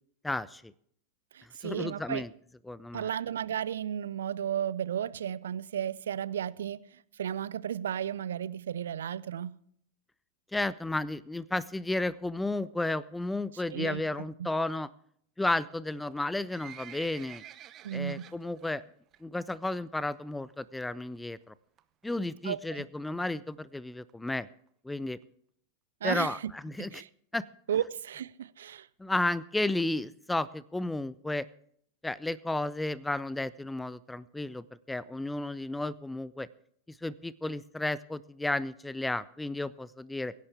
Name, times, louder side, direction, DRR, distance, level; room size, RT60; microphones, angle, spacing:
voice 1, 0.2-0.7 1.6-2.3 2.7-3.1 10.5-14.9 15.4-17.4 17.9-18.8 19.2-21.5 22.0-24.5 24.8-25.2 26.0-27.0 27.3-27.4 29.0-31.4 32.0-36.5 36.9-40.3, left 2 dB, 5° left, 0.5 m, -33 dB
voice 2, 1.3-2.2 2.9-9.6 13.7-14.0 14.4-14.5 17.8-18.3 22.4-22.8 26.0-26.5 26.8-27.1 27.7-28.9, right 9 dB, 65° right, 0.5 m, -34 dB
Livestock farm animals working animals, 16.1-18.8 19.1-19.4 19.7-19.8 20.5-20.6 20.9-21.0 21.1-21.2 21.8-22.0 22.6-22.7 22.9-23.0 23.2-23.3 23.5-23.6 24.1-24.2 24.7-24.8 25.2-25.3, right 11 dB, 30° right, 0.8 m, -49 dB
23.5 x 11.0 x 3.5 m
figure-of-eight pair, 90°, 0 cm